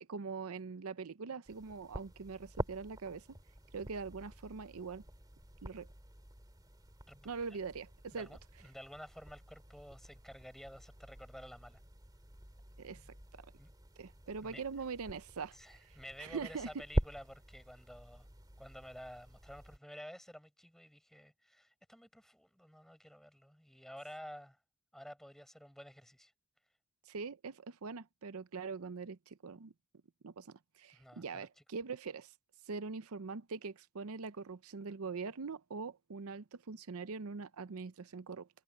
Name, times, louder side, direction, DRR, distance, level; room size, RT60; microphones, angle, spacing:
voice 1, 0.0-3.3 3.7-5.0 5.6-5.9 7.2-8.3 12.8-13.1 13.3-13.5 14.0-16.7 27.1-29.7 30.2-32.3 32.7-38.5, right 5 dB, 85° right, 0.6 m, -43 dB
sound 1, 1.5-19.8, equal, 20° right, 2.7 m, -45 dB
voice 2, 8.1-11.8 13.6-13.7 14.4-14.6 15.5-18.3 18.6-24.6 24.9-26.3 30.9-31.5, equal, ahead, 7.5 m, -52 dB
head